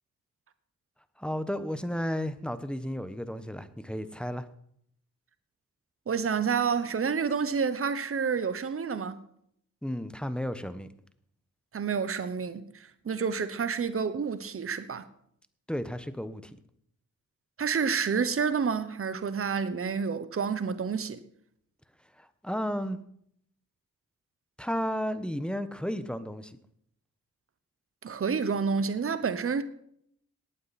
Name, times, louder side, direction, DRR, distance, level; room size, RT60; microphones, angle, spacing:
voice 1, 1.2-4.4 9.8-10.9 15.7-16.5 22.2-23.0 24.6-26.6, equal, 5° left, 1.1 m, -33 dB
voice 2, 6.1-9.2 11.7-15.0 17.6-21.2 28.0-29.6, right 6 dB, 45° right, 1.0 m, -29 dB
18.0 x 9.0 x 4.2 m
cardioid pair, 65°, 32 cm